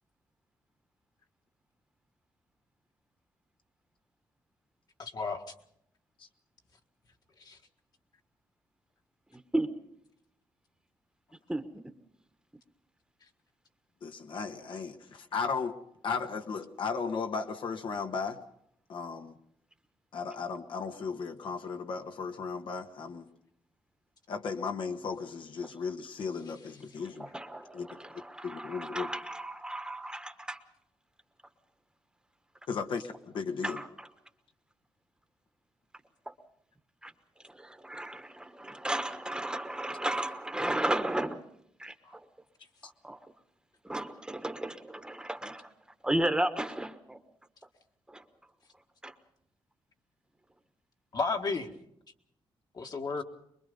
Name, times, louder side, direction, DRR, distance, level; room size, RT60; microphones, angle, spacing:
voice 1, 5.0-5.5 7.4-7.6 42.0-42.1 51.1-51.7 52.7-53.2, left 4 dB, 50° left, 1.8 m, -33 dB
voice 2, 9.3-9.7 11.5-11.6 27.2-30.6 33.6-34.1 36.3-36.4 37.0-37.1 37.4-41.4 41.8-42.2 42.8-43.2 43.8-45.7 46.0-47.2 48.1-48.2 49.0-49.1, right 1 dB, 10° right, 1.3 m, -34 dB
voice 3, 14.0-15.7 16.0-18.4 18.9-19.3 20.1-23.3 24.3-27.3 27.7-27.9 28.4-29.1 32.7-33.8, left 5 dB, 70° left, 1.4 m, -35 dB
24.0 x 22.0 x 5.4 m
cardioid pair, 105°, 9 cm